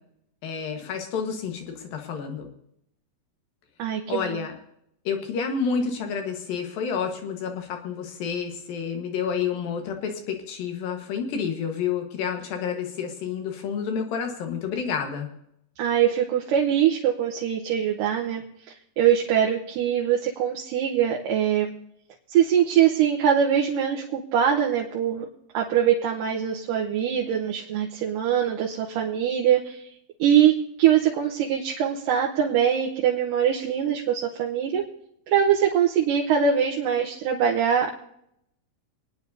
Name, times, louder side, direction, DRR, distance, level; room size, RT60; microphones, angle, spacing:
voice 1, 0.4-2.5 4.1-4.5 5.0-15.3, left 6 dB, 85° left, 3 dB, 3.2 m, -29 dB
voice 2, 3.8-4.4 15.8-18.4 19.0-21.7 22.3-25.3 25.5-29.8 30.2-34.8 35.3-38.0, right 9 dB, 80° right, -1 dB, 2.6 m, -23 dB
28.0 x 9.7 x 2.7 m, 0.77 s
omnidirectional pair, 4.0 m